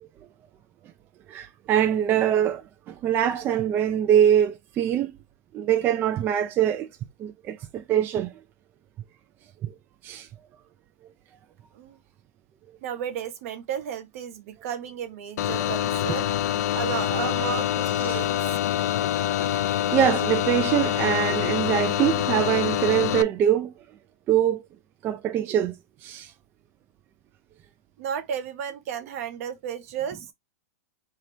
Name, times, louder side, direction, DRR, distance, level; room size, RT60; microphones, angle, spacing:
voice 1, 1.3-5.1 5.5-6.9 7.2-8.3 9.6-9.7 10.0-10.3 15.6-15.7 18.1-18.2 19.6-23.7 24.3-24.6 25.0-25.8 26.0-26.3, right 10 dB, 25° right, 0.3 m, -23 dB
voice 2, 12.8-16.3 16.7-18.4 28.0-30.2, right 8 dB, 60° right, 0.9 m, -33 dB
sound 1, 15.4-23.2, left 12 dB, 75° left, 0.4 m, -25 dB
4.0 x 2.8 x 3.2 m
supercardioid pair, 145°, 9 cm